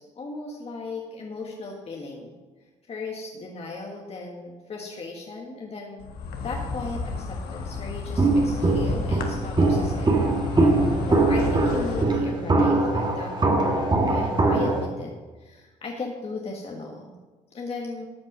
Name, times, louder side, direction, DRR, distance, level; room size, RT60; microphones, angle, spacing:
voice 1, 0.0-2.3 2.9-6.1 6.4-10.1 11.0-15.1 15.4-17.2 17.5-18.1, left 3 dB, 40° left, 0 dB, 1.6 m, -37 dB
Insect, 6.0-12.0, left 4 dB, 70° left, 1.5 m, -32 dB
Walk footsteps, 8.2-14.9, right 2 dB, 30° right, 2.0 m, -22 dB
12.5 x 5.3 x 6.2 m, 1.3 s
hypercardioid pair, 60°, 16 cm